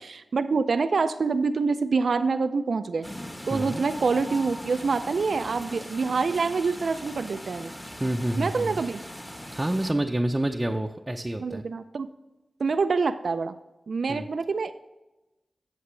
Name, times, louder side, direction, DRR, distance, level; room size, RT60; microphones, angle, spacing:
voice 1, 0.0-3.1 3.5-7.7 8.4-9.0 11.4-12.1 12.6-13.6 13.9-14.8, right 4 dB, 75° right, 10 dB, 0.4 m, -26 dB
sound 1, 3.0-9.9, equal, 15° left, 1.2 m, -40 dB
voice 2, 3.5-3.8 8.0-8.8 9.5-11.6 14.1-14.3, right 1 dB, 25° right, 2 dB, 0.6 m, -28 dB
8.1 x 7.4 x 3.2 m, 1.0 s
cardioid pair, 45°, 0 cm